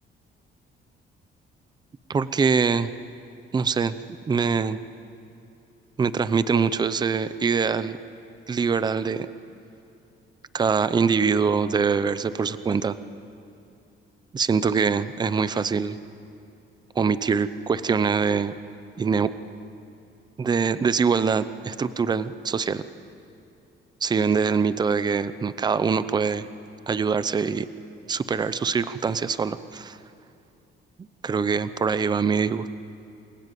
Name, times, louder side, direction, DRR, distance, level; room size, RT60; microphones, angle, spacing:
voice 1, 2.1-2.9 3.5-4.0 4.3-4.8 6.0-8.0 8.5-9.3 10.5-13.0 14.3-16.0 17.0-18.5 19.0-19.3 20.4-22.8 24.0-26.5 26.9-27.7 28.1-30.0 31.2-32.7, right 5 dB, 20° right, 13 dB, 0.7 m, -23 dB
28.0 x 22.0 x 9.3 m, 2.7 s
cardioid pair, 180°, 21 cm